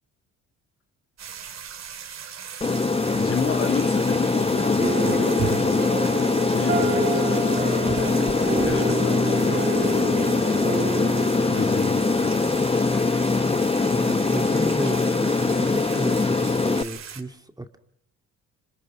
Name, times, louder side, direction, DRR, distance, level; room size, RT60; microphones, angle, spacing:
sound 1, 1.2-17.2, right 8 dB, 60° right, 3.1 m, -37 dB
Aircraft, 2.6-16.8, left 3 dB, 20° left, 1.0 m, -22 dB
voice 1, 3.1-7.6 8.2-12.5, left 7 dB, 45° left, 1.8 m, -33 dB
sound 2, 4.8-13.3, right 3 dB, 30° right, 2.8 m, -30 dB
voice 2, 13.8-17.8, right 1 dB, 10° right, 2.2 m, -34 dB
26.5 x 26.0 x 6.0 m
cardioid pair, 90°, 30 cm